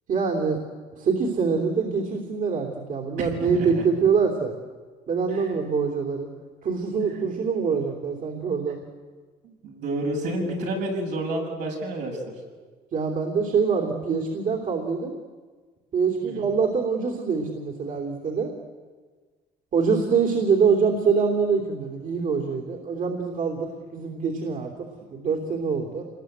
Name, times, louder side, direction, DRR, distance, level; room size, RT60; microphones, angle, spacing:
voice 1, 0.1-0.6 1.0-4.5 5.1-6.3 6.6-8.8 12.9-15.1 15.9-18.5 19.7-24.7 25.1-26.0, right 5 dB, 50° right, 0 dB, 3.2 m, -24 dB
voice 2, 3.2-3.9 5.3-5.5 9.4-12.3 16.2-16.5, right 1 dB, 80° right, -1 dB, 7.2 m, -30 dB
27.0 x 20.5 x 8.1 m, 1.4 s
cardioid pair, 110°, 17 cm